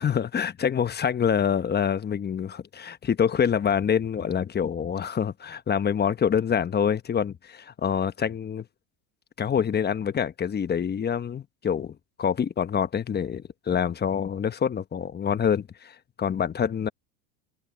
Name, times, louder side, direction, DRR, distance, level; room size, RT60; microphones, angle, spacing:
voice 1, 0.0-8.6 9.4-16.9, left 7 dB, 20° left, 1.1 m, -26 dB
open air
hypercardioid pair, 105°, 46 cm